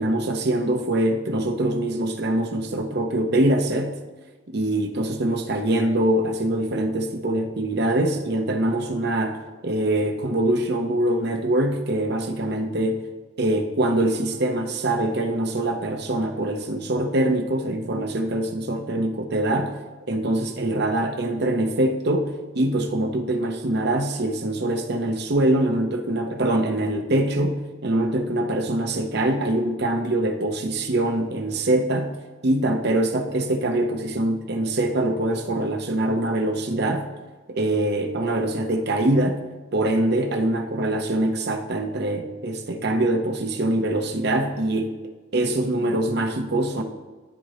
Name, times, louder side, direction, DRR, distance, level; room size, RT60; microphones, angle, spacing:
voice 1, 0.0-4.0 4.5-13.1 13.4-19.8 20.1-32.1 32.4-37.1 37.5-39.4 39.7-44.9 45.3-46.8, right 1 dB, 55° right, 5 dB, 0.8 m, -23 dB
13.0 x 4.6 x 2.8 m, 1.3 s
head